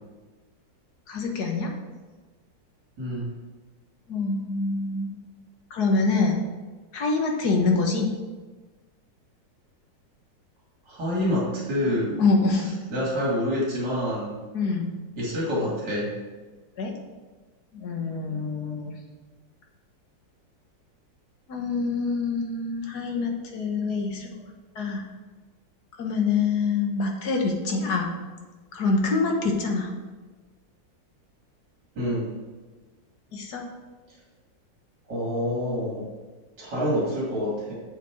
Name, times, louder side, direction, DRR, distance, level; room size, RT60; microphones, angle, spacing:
voice 1, 1.1-1.7 4.1-5.1 5.7-6.4 6.9-8.1 12.2-12.8 14.5-15.0 16.8-16.9 17.7-18.9 21.5-24.3 24.8-25.0 26.0-28.1 28.7-29.9 33.3-33.7, left 4 dB, 60° left, 1 dB, 1.9 m, -25 dB
voice 2, 3.0-3.3 10.9-12.2 12.9-14.3 15.2-16.1 32.0-32.3 35.1-36.1 36.6-37.7, equal, 65° right, -6 dB, 3.3 m, -27 dB
7.9 x 7.2 x 5.0 m, 1.3 s
omnidirectional pair, 2.0 m